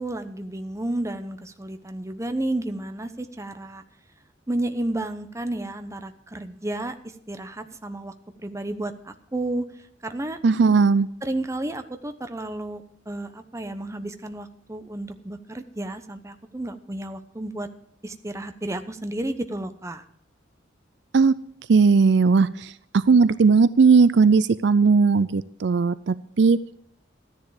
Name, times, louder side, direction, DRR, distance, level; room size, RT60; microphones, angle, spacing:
voice 1, 0.0-3.8 4.5-6.9 7.3-8.1 8.4-9.6 10.0-10.4 11.2-17.7 18.0-20.0, right 1 dB, 15° right, 9 dB, 0.9 m, -32 dB
voice 2, 10.4-11.1 21.1-21.3 21.7-26.6, right 4 dB, 60° right, 16 dB, 0.4 m, -18 dB
13.5 x 10.5 x 4.9 m, 0.68 s
head